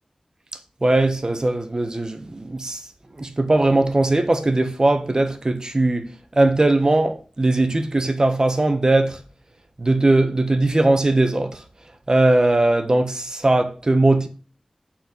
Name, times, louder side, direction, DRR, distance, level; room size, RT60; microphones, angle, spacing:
voice 1, 0.8-2.9 3.2-9.2 9.8-11.6 12.1-14.3, right 2 dB, 35° right, 1.2 m, -19 dB
8.1 x 4.4 x 6.1 m
wide cardioid pair, 70°, 2 cm